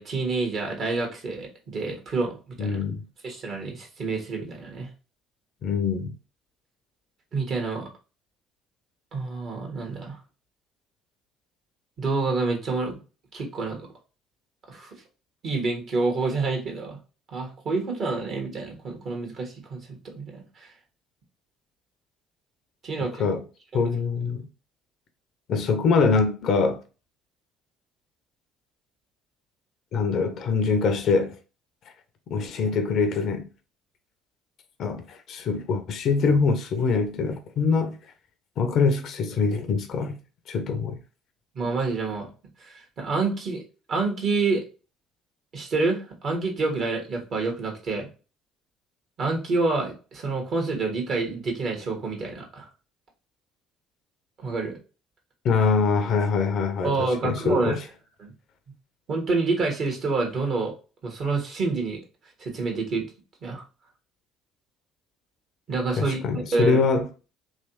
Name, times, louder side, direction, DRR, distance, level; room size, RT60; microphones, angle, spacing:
voice 1, 0.0-2.8 3.2-4.9 7.3-7.9 9.1-10.2 12.0-13.0 13.3-13.9 14.7-14.9 15.4-17.0 17.3-20.7 22.8-23.2 23.7-23.9 41.5-42.3 42.6-43.6 43.9-44.6 45.5-48.1 49.2-52.7 54.4-54.8 56.8-57.8 58.2-58.3 59.1-60.7 61.0-62.0 62.4-63.1 63.4-63.6 65.7-66.8, right 3 dB, 50° right, 1.3 m, -28 dB
voice 2, 2.6-3.0 5.6-6.1 23.2-23.4 23.7-24.5 25.5-26.8 29.9-31.3 32.3-33.5 34.8-38.0 38.6-40.2 40.5-41.0 55.4-57.8 66.0-67.1, left 4 dB, 55° left, 0.5 m, -24 dB
3.2 x 3.0 x 2.8 m
figure-of-eight pair, 55°, 0 cm